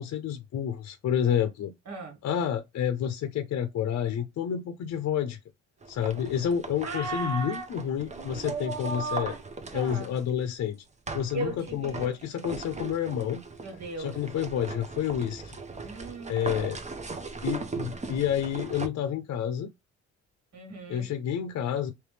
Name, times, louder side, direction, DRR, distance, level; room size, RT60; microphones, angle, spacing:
voice 1, 0.0-1.7 2.2-5.4 5.9-9.3 9.7-10.8 11.1-13.4 14.0-15.6 16.3-16.8 17.4-19.7 20.9-21.9, left 9 dB, 60° left, 0.6 m, -29 dB
sound 1, 5.8-10.4 11.1-18.9, right 3 dB, 25° right, 0.8 m, -39 dB
voice 2, 6.8-7.7 8.1-9.4 9.7-10.1 11.3-12.1 13.6-14.1 15.8-16.6 20.5-21.1, right 3 dB, 60° right, 2.2 m, -36 dB
3.2 x 3.0 x 3.3 m
cardioid pair, 90°, 30 cm